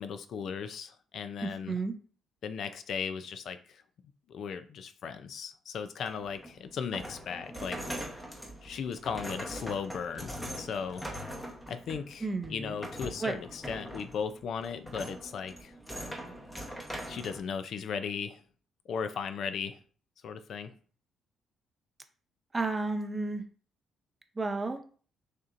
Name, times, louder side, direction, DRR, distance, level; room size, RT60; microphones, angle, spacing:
voice 1, 0.0-1.8 2.4-3.8 4.3-7.9 8.6-11.1 11.7-15.8 17.1-18.4 18.9-19.8 20.2-20.8, left 6 dB, 55° left, 10 dB, 0.4 m, -37 dB
voice 2, 1.4-2.0 12.2-12.8 13.2-13.4 22.5-23.4 24.4-24.8, right 3 dB, 15° right, 6 dB, 0.5 m, -32 dB
sound 1, 6.1-17.4, equal, 10° left, 0.8 m, -42 dB
6.5 x 2.8 x 2.5 m, 0.42 s
cardioid pair, 135°, 0 cm